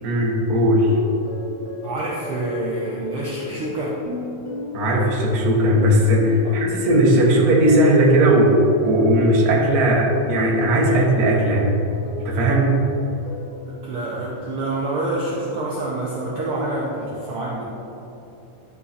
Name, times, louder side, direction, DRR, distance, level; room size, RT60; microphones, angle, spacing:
voice 1, 0.0-1.0 4.7-8.6 8.8-11.7 12.2-12.8, right 1 dB, 65° right, -3 dB, 0.9 m, -17 dB
sound 1, 0.9-11.3 11.7-12.9 13.3-13.8, left 2 dB, 55° left, 1.0 m, -34 dB
voice 2, 1.8-4.0 6.4-6.5 13.7-17.6, right 2 dB, 85° right, -5 dB, 1.2 m, -27 dB
12.0 x 5.6 x 4.2 m, 2.9 s
omnidirectional pair, 3.9 m